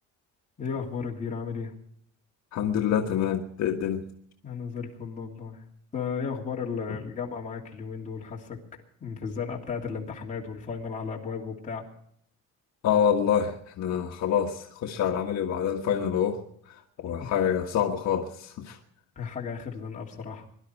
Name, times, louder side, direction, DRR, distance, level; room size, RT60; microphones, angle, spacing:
voice 1, 0.6-1.7 4.4-5.6 5.9-8.6 9.0-11.8 17.2-17.3 19.2-20.5, left 6 dB, 25° left, 2.9 m, -34 dB
voice 2, 2.5-4.0 12.8-16.4 17.0-18.8, left 8 dB, 60° left, 1.6 m, -26 dB
22.5 x 12.0 x 4.6 m
cardioid pair, 175°, 31 cm